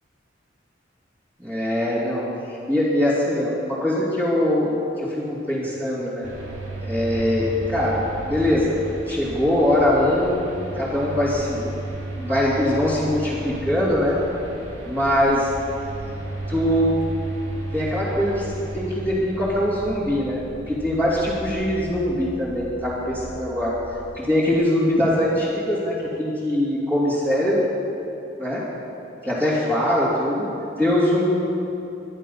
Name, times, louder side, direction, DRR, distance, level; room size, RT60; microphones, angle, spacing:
voice 1, 1.4-6.3 6.8-8.8 9.1-10.4 10.8-11.7 12.2-14.2 14.9-15.5 16.5-16.9 17.7-18.4 18.7-23.8 24.1-27.6 28.4-28.7 29.2-30.5 30.8-31.2, left 1 dB, 10° right, -9 dB, 2.6 m, -22 dB
sound 1, 6.2-24.2, right 2 dB, 75° right, 2.8 m, -34 dB
23.0 x 10.5 x 5.6 m, 2.8 s
head